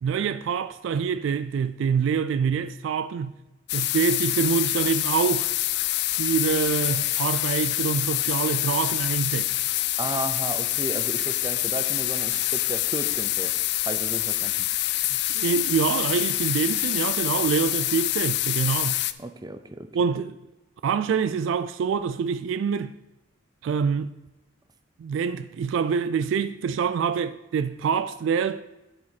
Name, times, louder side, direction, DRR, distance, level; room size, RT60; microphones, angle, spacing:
voice 1, 0.0-3.3 3.7-5.5 6.2-9.5 15.3-19.0 19.9-20.4 20.8-22.9 23.6-24.1 25.0-28.6, right 6 dB, 75° right, 0.3 m, -25 dB
sound 1, 3.7-19.1, left 15 dB, 60° left, 0.3 m, -26 dB
voice 2, 10.0-13.5 13.8-14.7 19.2-19.9, right 2 dB, 20° right, 0.5 m, -34 dB
11.0 x 4.9 x 4.1 m
head